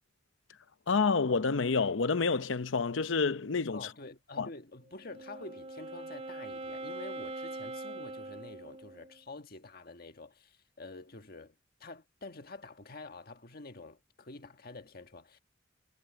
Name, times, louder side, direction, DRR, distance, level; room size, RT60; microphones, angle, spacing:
voice 1, 0.9-3.9 4.4-4.5, left 4 dB, 80° left, 0.7 m, -28 dB
voice 2, 3.7-11.5 11.8-15.4, left 3 dB, 50° left, 1.6 m, -48 dB
Wind instrument woodwind instrument, 4.9-9.2, right 2 dB, 35° right, 2.7 m, -42 dB
head